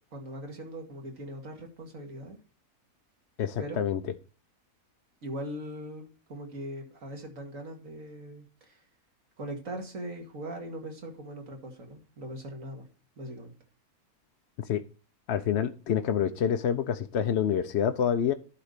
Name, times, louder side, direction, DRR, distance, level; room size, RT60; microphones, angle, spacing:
voice 1, 0.1-2.4 3.6-3.8 5.2-6.0 6.3-8.8 9.4-12.8 13.2-13.5, right 1 dB, 60° right, 2.6 m, -40 dB
voice 2, 3.4-4.0 14.7-14.8 15.3-18.3, left 8 dB, 60° left, 0.8 m, -27 dB
11.5 x 4.2 x 6.6 m
omnidirectional pair, 1.6 m